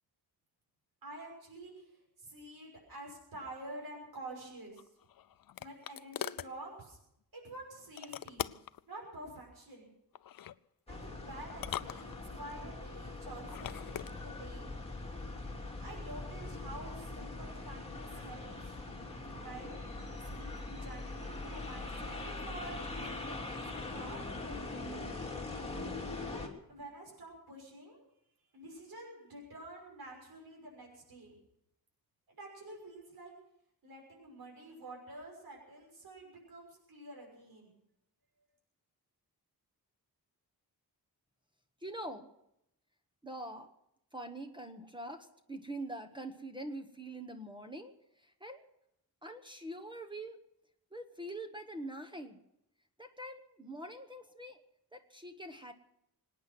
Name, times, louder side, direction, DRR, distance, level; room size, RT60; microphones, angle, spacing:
voice 1, 1.0-4.9 5.6-7.0 7.3-8.5 8.9-9.9 10.9-14.7 15.8-18.8 19.4-19.7 20.1-25.0 26.3-26.4 26.7-28.1 28.5-31.3 32.3-33.3 33.8-37.7, right 1 dB, 70° right, -1 dB, 6.3 m, -49 dB
sound 1, 4.8-6.5 8.0-8.8 10.1-10.6 11.5-12.5 13.4-14.1, left 11 dB, 65° left, 0.5 m, -41 dB
sound 2, 10.9-26.5, left 2 dB, 15° left, 2.7 m, -42 dB
voice 2, 41.8-42.3 43.2-43.7 44.1-48.6 49.2-50.4 50.9-52.4 53.0-54.6 54.9-55.7, right 1 dB, 10° right, 6 dB, 1.1 m, -44 dB
25.0 x 9.4 x 6.1 m, 0.80 s
wide cardioid pair, 170°, 37 cm